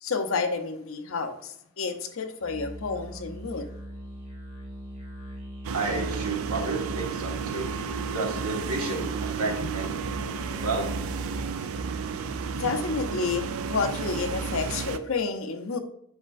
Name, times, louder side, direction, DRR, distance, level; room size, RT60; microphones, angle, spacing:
voice 1, 0.0-3.7 9.6-9.7 12.6-15.8, left 4 dB, 65° left, 0.7 m, -30 dB
Musical instrument, 2.4-14.1, equal, 30° right, 1.9 m, -42 dB
sound 1, 5.6-15.0, right 6 dB, 70° right, 0.4 m, -32 dB
voice 2, 5.7-7.7 8.1-10.3 10.6-10.9, right 3 dB, 85° right, 1.6 m, -31 dB
7.8 x 5.6 x 2.5 m
head